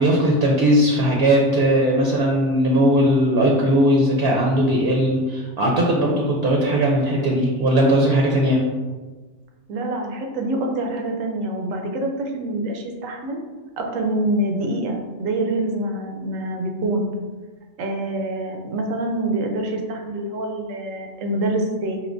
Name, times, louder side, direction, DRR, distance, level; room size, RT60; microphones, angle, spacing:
voice 1, 0.0-8.6, equal, 60° right, -1 dB, 0.8 m, -18 dB
voice 2, 9.7-13.4 13.8-17.0 17.8-22.0, right 1 dB, 80° right, 2 dB, 1.1 m, -26 dB
5.3 x 2.8 x 2.5 m, 1.3 s
omnidirectional pair, 1.3 m